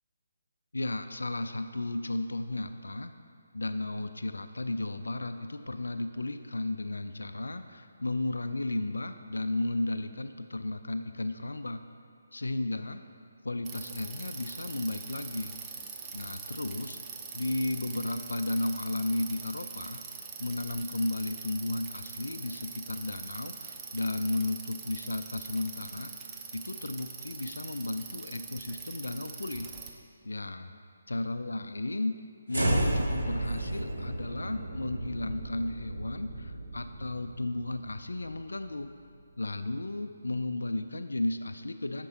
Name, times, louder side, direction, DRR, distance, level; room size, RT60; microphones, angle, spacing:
voice 1, 0.7-3.1 3.5-11.8 12.3-13.0 13.4-15.6 16.1-20.0 20.4-26.1 26.5-29.7 30.2-30.7 31.1-32.2 32.5-38.9 39.4-42.1, left 2 dB, 75° left, 9 dB, 0.3 m, -34 dB
Bicycle, 13.6-29.9, right 5 dB, 15° right, 0.4 m, -43 dB
sound 1, 32.5-38.8, right 1 dB, 65° right, 1.5 m, -33 dB
6.6 x 5.3 x 4.2 m, 2.3 s
figure-of-eight pair, 145°, 0 cm